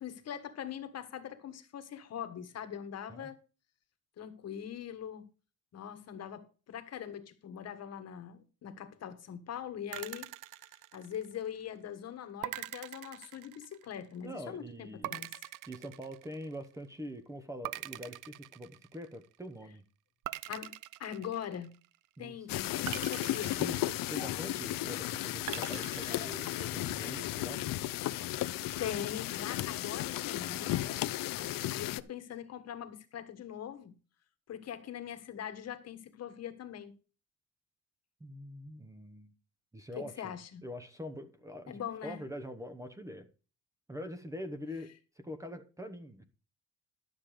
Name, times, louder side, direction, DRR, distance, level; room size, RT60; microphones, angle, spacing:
voice 1, 0.0-3.4 4.2-5.3 5.7-10.3 10.9-15.3 20.5-20.7 21.0-21.7 22.2-23.6 28.8-33.9 34.5-37.0 40.0-40.6 41.7-42.2, left 9 dB, 50° left, 1.4 m, -42 dB
sound 1, 9.9-11.5 12.4-14.1 15.0-16.8 17.6-19.3 20.2-22.0 22.9-24.6 25.5-26.9, right 16 dB, 70° right, 0.5 m, -43 dB
voice 2, 14.2-15.1 15.7-19.8 22.2-22.3 23.6-27.6 38.2-39.3 39.7-40.3 40.6-43.3 43.9-44.9 45.2-46.2, equal, 10° right, 0.9 m, -44 dB
sound 2, 22.5-32.0, left 15 dB, 75° left, 0.7 m, -35 dB
12.0 x 7.5 x 5.0 m
cardioid pair, 165°, 33 cm